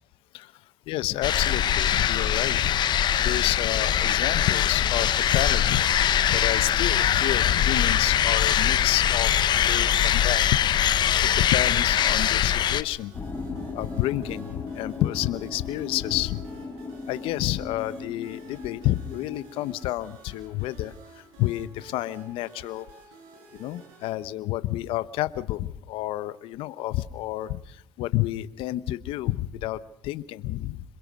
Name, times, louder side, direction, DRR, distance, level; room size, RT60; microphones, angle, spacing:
voice 1, 0.9-2.8 3.2-5.8 6.3-10.6 11.2-13.1 13.7-16.4 17.1-22.9 23.5-30.8, left 15 dB, 70° left, 15 dB, 1.1 m, -30 dB
sound 1, 1.2-12.8, left 10 dB, 55° left, 1.2 m, -22 dB
sound 2, 4.3-24.1, right 2 dB, 85° right, 7.7 m, -51 dB
sound 3, 13.1-19.5, left 4 dB, 25° left, 5.3 m, -37 dB
27.0 x 22.0 x 6.4 m, 0.73 s
supercardioid pair, 80°, 9 cm